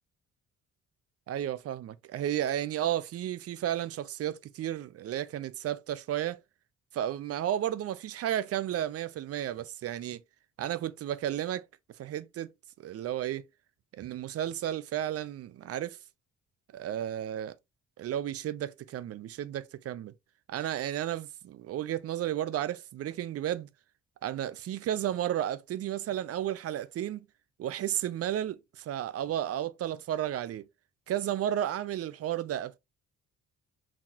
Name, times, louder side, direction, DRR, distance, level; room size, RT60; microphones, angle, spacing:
voice 1, 1.3-6.4 6.9-10.2 10.6-11.7 12.0-12.5 12.8-13.4 13.9-16.0 16.7-17.6 18.0-20.1 20.5-23.7 24.2-27.2 27.6-30.7 31.1-32.8, right 11 dB, 50° right, 0.4 m, -33 dB
4.0 x 2.8 x 2.4 m
cardioid pair, 90°, 30 cm